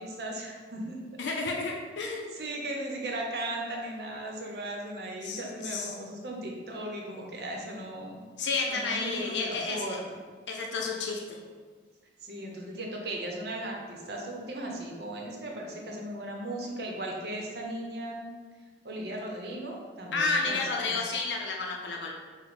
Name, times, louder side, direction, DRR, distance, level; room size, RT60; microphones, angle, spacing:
voice 1, 0.0-1.2 2.3-8.2 8.7-10.0 12.2-18.3 18.8-21.2, right 1 dB, 60° right, 0 dB, 0.8 m, -37 dB
voice 2, 1.2-2.4 5.2-5.9 8.4-10.0 10.5-11.4 20.1-22.1, left 3 dB, 80° left, 0 dB, 0.5 m, -31 dB
5.1 x 2.1 x 4.8 m, 1.5 s
head